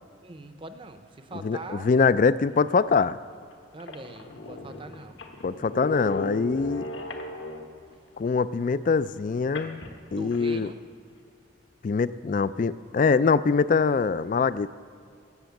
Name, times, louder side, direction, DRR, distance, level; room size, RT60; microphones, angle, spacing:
voice 1, 0.2-1.9 3.7-5.2 10.1-10.8, right 2 dB, 25° right, 8 dB, 0.6 m, -42 dB
voice 2, 1.4-3.2 5.4-6.9 8.2-9.8 10.1-10.7 11.8-14.7, left 5 dB, 40° left, 16 dB, 0.3 m, -23 dB
sound 1, 2.8-2.9 3.5-3.6 3.8-7.9 9.5-10.6, left 1 dB, 70° left, 1.4 m, -37 dB
17.0 x 7.4 x 7.0 m, 2.3 s
head